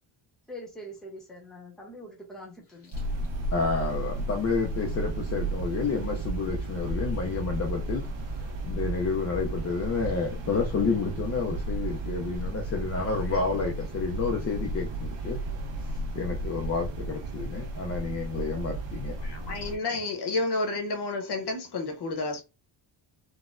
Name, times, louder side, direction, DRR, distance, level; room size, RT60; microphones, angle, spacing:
voice 1, 0.5-2.9, equal, ahead, 0.7 m, -43 dB
sound 1, 2.9-19.8, right 2 dB, 90° right, 1.3 m, -33 dB
voice 2, 3.5-8.0 8.3-15.4 15.8-19.1, left 4 dB, 35° left, 0.4 m, -30 dB
voice 3, 19.2-22.4, left 2 dB, 55° left, 0.9 m, -30 dB
4.0 x 2.1 x 2.4 m
wide cardioid pair, 180°, 49 cm